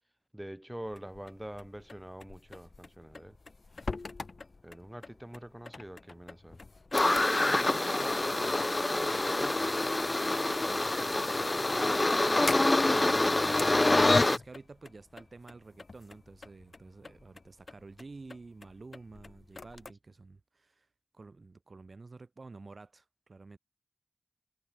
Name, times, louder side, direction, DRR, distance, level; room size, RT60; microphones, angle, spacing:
voice 1, 0.3-3.4 4.6-6.6, right 1 dB, 10° right, 7.0 m, -45 dB
sound 1, 0.8-19.9, left 3 dB, 90° left, 4.8 m, -46 dB
sound 2, 6.9-14.4, left 2 dB, 40° left, 1.1 m, -27 dB
voice 2, 7.0-20.9 21.1-23.6, right 3 dB, 90° right, 7.5 m, -50 dB
sound 3, 11.3-14.4, left 3 dB, 65° left, 2.8 m, -31 dB
wide cardioid pair, 60°, 0 cm